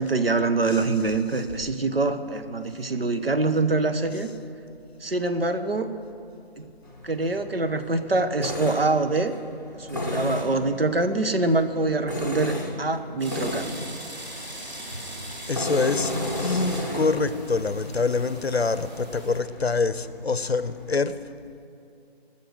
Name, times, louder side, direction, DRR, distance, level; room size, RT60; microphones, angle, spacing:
voice 1, 0.0-4.3 5.0-5.9 6.6-6.7 7.0-9.3 9.7-13.9, right 3 dB, 60° right, 9 dB, 1.0 m, -25 dB
Tools, 6.8-20.9, left 1 dB, 20° left, 0.7 m, -34 dB
sound 1, 13.2-19.4, right 1 dB, 40° right, 2.9 m, -40 dB
voice 2, 15.5-16.1 16.4-21.2, left 4 dB, 70° left, 14 dB, 0.7 m, -25 dB
20.0 x 6.8 x 6.4 m, 2.6 s
figure-of-eight pair, 160°, 32 cm